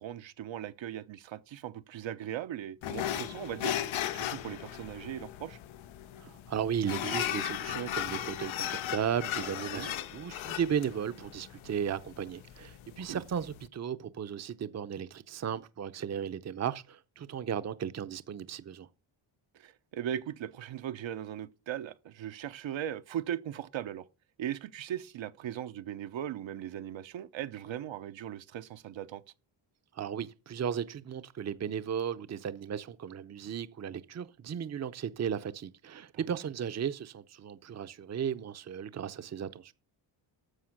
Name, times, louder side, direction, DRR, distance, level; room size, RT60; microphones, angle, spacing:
voice 1, 0.0-3.8 4.1-5.6 9.7-9.9 13.0-13.2 19.5-24.0 24.4-29.2 36.1-36.5, right 11 dB, 75° right, 0.9 m, -39 dB
sound 1, 2.8-13.7, left 11 dB, 80° left, 0.8 m, -37 dB
voice 2, 6.2-18.9 29.9-39.7, right 8 dB, 35° right, 0.7 m, -35 dB
11.5 x 7.2 x 5.9 m
cardioid pair, 110°, 47 cm